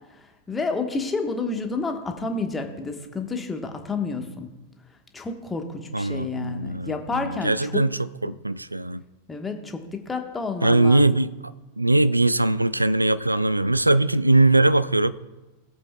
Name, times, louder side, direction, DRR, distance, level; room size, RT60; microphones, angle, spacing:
voice 1, 0.1-4.5 5.1-7.7 9.3-11.0, left 3 dB, 15° left, 4 dB, 1.2 m, -30 dB
voice 2, 5.9-7.9 8.2-9.0 10.6-11.3 11.8-15.1, right 2 dB, 85° right, 16 dB, 0.3 m, -20 dB
17.5 x 7.6 x 2.3 m, 1.1 s
figure-of-eight pair, 90°, 0 cm